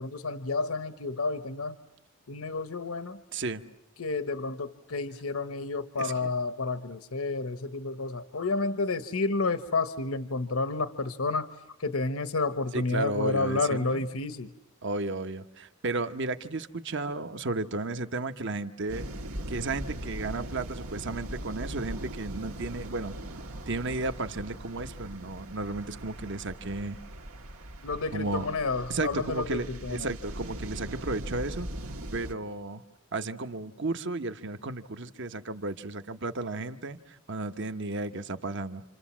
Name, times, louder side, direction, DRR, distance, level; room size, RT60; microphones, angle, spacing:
voice 1, 0.0-1.8 2.3-3.2 4.0-11.5 11.8-14.5 27.8-30.1, left 3 dB, 80° left, 11 dB, 1.1 m, -30 dB
voice 2, 3.3-3.6 6.0-6.1 12.7-14.0 14.8-19.1 19.5-23.2 23.7-27.0 28.1-28.5 28.9-31.7 32.1-32.8 33.1-38.8, right 3 dB, 55° right, 9 dB, 1.2 m, -33 dB
sound 1, 18.9-32.3, right 1 dB, 90° right, 1.9 m, -40 dB
29.0 x 27.5 x 7.4 m, 0.86 s
head